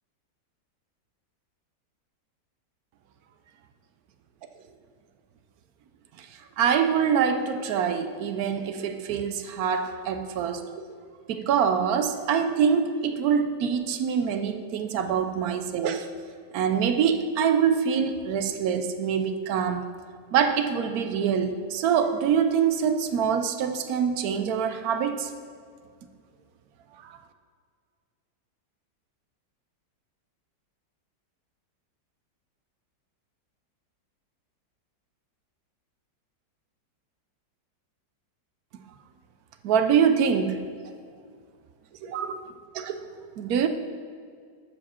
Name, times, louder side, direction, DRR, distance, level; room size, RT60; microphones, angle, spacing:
voice 1, 6.6-10.7 11.3-16.1 16.5-19.9 20.3-25.3 27.0-27.2 39.6-40.6 42.0-42.4 42.7-43.1 43.4-43.7, right 7 dB, 70° right, 8 dB, 1.0 m, -25 dB
13.0 x 4.8 x 4.3 m, 2.2 s
omnidirectional pair, 1.9 m